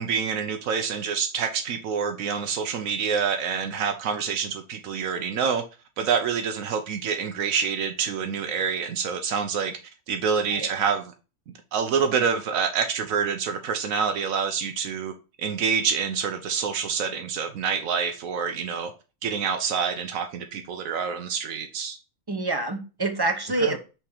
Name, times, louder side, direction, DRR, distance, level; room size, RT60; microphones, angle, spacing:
voice 1, 0.0-5.6 6.0-9.8 10.1-11.0 11.7-15.1 15.4-18.9 19.2-22.0 23.6-23.8, right 6 dB, 85° right, 1.1 m, -27 dB
voice 2, 22.3-23.8, right 2 dB, 25° right, 0.6 m, -26 dB
5.8 x 3.3 x 4.9 m
omnidirectional pair, 1.4 m